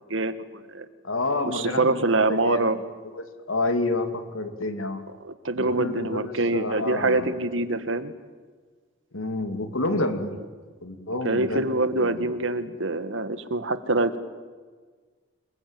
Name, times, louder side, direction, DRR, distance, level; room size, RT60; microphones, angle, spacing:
voice 1, 0.1-0.9 1.5-2.8 5.2-8.1 11.1-14.2, right 2 dB, 65° right, 11 dB, 1.6 m, -25 dB
voice 2, 1.0-2.6 3.0-5.0 5.5-7.3 9.1-10.4 10.8-11.7 11.9-12.2, left 2 dB, 85° left, 7 dB, 2.7 m, -29 dB
27.0 x 21.0 x 9.2 m, 1.5 s
head